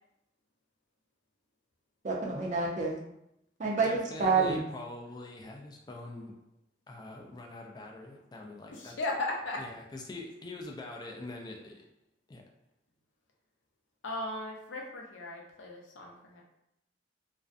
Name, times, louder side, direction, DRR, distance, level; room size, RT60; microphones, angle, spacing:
voice 1, 2.0-3.0 3.6-4.6, right 4 dB, 40° right, -2 dB, 0.5 m, -28 dB
voice 2, 3.8-6.3 6.9-8.9 9.6-11.8 12.3-12.4, left 2 dB, 20° left, 1 dB, 0.3 m, -44 dB
voice 3, 8.6-10.0 10.4-10.6 10.8-10.9 11.3-11.4 14.0-16.4, left 2 dB, 90° left, 0 dB, 0.6 m, -38 dB
2.5 x 2.1 x 2.4 m, 0.80 s
head